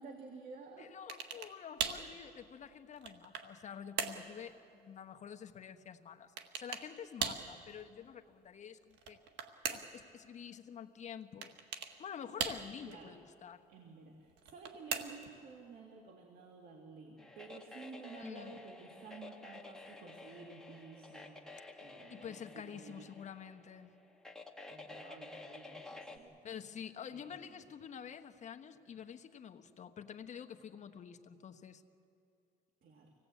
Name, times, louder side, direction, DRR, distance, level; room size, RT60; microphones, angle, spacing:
voice 1, 0.0-0.9 12.8-13.2 13.7-21.4 21.8-23.1 24.7-26.3 27.1-27.6 32.8-33.1, right 4 dB, 60° right, 2 dB, 2.4 m, -52 dB
voice 2, 0.8-6.3 6.6-9.2 9.7-11.5 12.0-13.6 18.2-18.6 22.1-23.9 26.4-31.8, left 8 dB, 45° left, 7 dB, 1.2 m, -48 dB
sound 1, 1.1-1.5 1.8-2.1 2.7-3.5 4.0-4.3 6.4-6.9 7.2-7.5 8.9-10.0 11.4-11.9 12.4-12.9 14.4-15.3, right 7 dB, 85° right, 1.7 m, -39 dB
sound 2, 17.2-26.2, left 2 dB, 5° left, 1.9 m, -52 dB
26.0 x 18.0 x 8.4 m, 2.6 s
cardioid pair, 110°, 17 cm